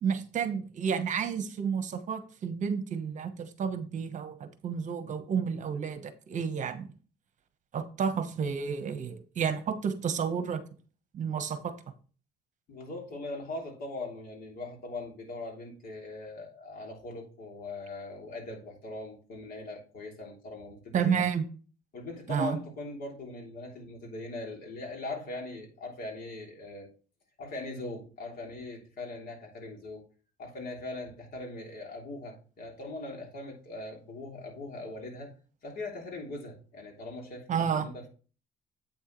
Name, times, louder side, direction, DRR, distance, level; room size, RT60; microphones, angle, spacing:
voice 1, 0.0-6.9 7.7-10.6 11.1-11.7 20.9-21.4 22.3-22.6 37.5-37.9, right 7 dB, 45° right, 1.1 m, -31 dB
voice 2, 12.7-21.2 21.9-26.9 27.4-30.0 30.4-35.3 35.6-38.1, left 2 dB, 60° left, 3.0 m, -40 dB
8.4 x 6.3 x 3.1 m
cardioid pair, 110°, 17 cm